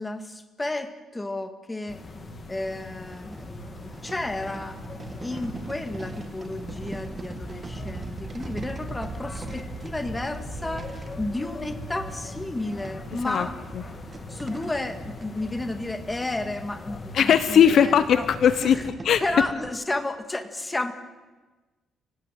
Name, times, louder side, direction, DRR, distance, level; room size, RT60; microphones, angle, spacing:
voice 1, 0.0-2.1 2.5-4.8 5.2-13.6 14.3-18.3 18.6-18.8 19.2-20.9, left 2 dB, 10° left, 8 dB, 2.0 m, -32 dB
sound 1, 1.9-18.9, left 2 dB, 25° left, 2.7 m, -41 dB
sound 2, 3.1-16.4 17.1-17.2 17.4-17.5 18.1-19.7, right 3 dB, 25° right, 1.9 m, -40 dB
voice 2, 17.1-19.2, left 8 dB, 55° left, 12 dB, 1.0 m, -19 dB
30.0 x 18.0 x 9.2 m, 1.2 s
cardioid pair, 145°, 0 cm